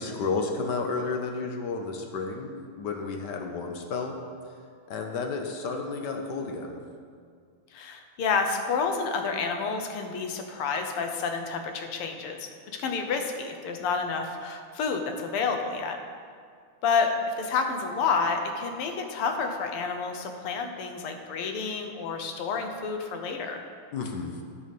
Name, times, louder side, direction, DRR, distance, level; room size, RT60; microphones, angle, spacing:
voice 1, 0.0-4.1 4.9-6.8 23.9-24.4, left 4 dB, 65° left, 3 dB, 1.2 m, -32 dB
voice 2, 7.7-16.0 16.8-23.6, left 5 dB, 85° left, 5 dB, 1.8 m, -29 dB
9.8 x 6.5 x 5.3 m, 2.1 s
omnidirectional pair, 2.4 m